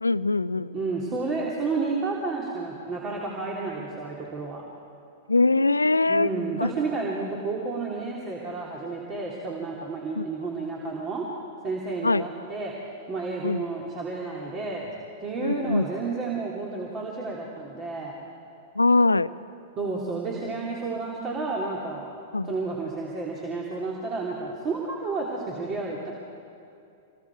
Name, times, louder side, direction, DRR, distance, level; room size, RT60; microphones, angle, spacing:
voice 1, 0.0-0.8 5.3-6.3 6.6-6.7 10.2-10.3 12.0-12.3 13.4-13.6 15.4-15.9 18.8-19.3 22.3-22.5, left 3 dB, 85° left, 17 dB, 0.4 m, -22 dB
voice 2, 0.7-4.6 6.1-11.3 11.6-12.7 13.1-14.9 15.2-18.2 19.8-22.1 22.4-26.1, right 3 dB, 30° right, -3 dB, 2.8 m, -31 dB
26.5 x 21.0 x 4.6 m, 2.6 s
figure-of-eight pair, 100°, 0 cm